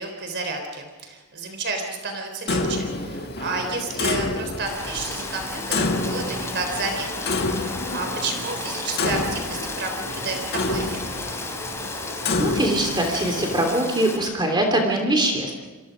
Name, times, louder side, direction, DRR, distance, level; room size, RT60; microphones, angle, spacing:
voice 1, 0.0-7.3 7.6-10.4 10.7-11.0, right 3 dB, 50° right, 4 dB, 3.9 m, -31 dB
Clock, 2.5-13.8, left 2 dB, 45° left, 2.0 m, -29 dB
Rain, 4.7-14.2, left 2 dB, 10° left, 4.0 m, -34 dB
voice 2, 12.4-15.6, right 1 dB, 20° right, 2 dB, 3.0 m, -22 dB
29.0 x 24.0 x 5.2 m, 1.3 s
head